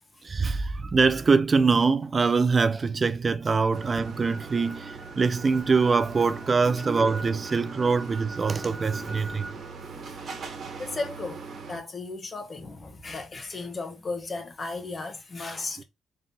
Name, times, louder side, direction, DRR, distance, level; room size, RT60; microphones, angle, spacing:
voice 1, 0.2-9.5, right 4 dB, 35° right, 0.3 m, -24 dB
sound 1, 3.7-11.8, right 4 dB, 55° right, 1.2 m, -38 dB
voice 2, 10.8-15.8, left 3 dB, 35° left, 1.0 m, -35 dB
3.7 x 3.6 x 2.7 m
cardioid pair, 90°, 0 cm